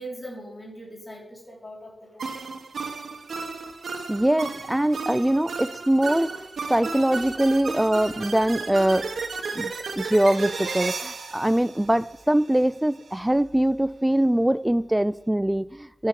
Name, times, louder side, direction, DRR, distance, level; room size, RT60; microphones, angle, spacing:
voice 1, 0.0-2.3, right 1 dB, 20° left, 3.3 m, -40 dB
sound 1, 2.2-12.6, right 4 dB, 85° right, 1.3 m, -34 dB
voice 2, 4.1-6.4 6.7-9.1 9.5-16.1, right 1 dB, 10° right, 0.3 m, -23 dB
13.5 x 6.4 x 4.9 m
wide cardioid pair, 110°, 0 cm